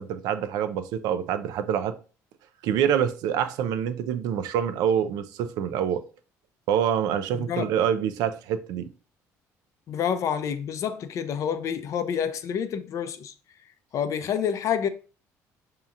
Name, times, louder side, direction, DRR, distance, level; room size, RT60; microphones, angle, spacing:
voice 1, 0.0-1.9 2.6-6.0 6.7-8.9, right 9 dB, 80° right, 0.4 m, -26 dB
voice 2, 7.3-7.7 9.9-13.3 13.9-14.9, left 8 dB, 55° left, 0.5 m, -28 dB
5.8 x 2.8 x 2.4 m
cardioid pair, 105°, 6 cm